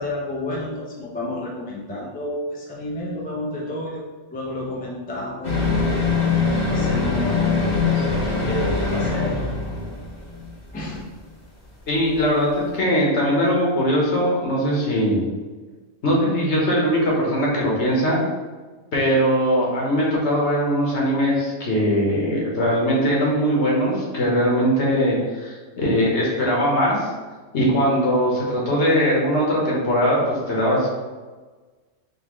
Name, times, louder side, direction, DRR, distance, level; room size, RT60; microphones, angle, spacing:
voice 1, 0.0-4.0 4.3-5.8 6.4-9.5 10.7-11.1, left 1 dB, 10° left, -4 dB, 0.4 m, -31 dB
sound 1, 5.4-10.4 10.8-10.9, left 4 dB, 40° left, 0.9 m, -22 dB
voice 2, 11.9-15.2 16.0-18.2 18.9-27.0 27.5-30.9, equal, 65° left, -4 dB, 1.3 m, -20 dB
4.0 x 3.0 x 3.0 m, 1.3 s
omnidirectional pair, 1.3 m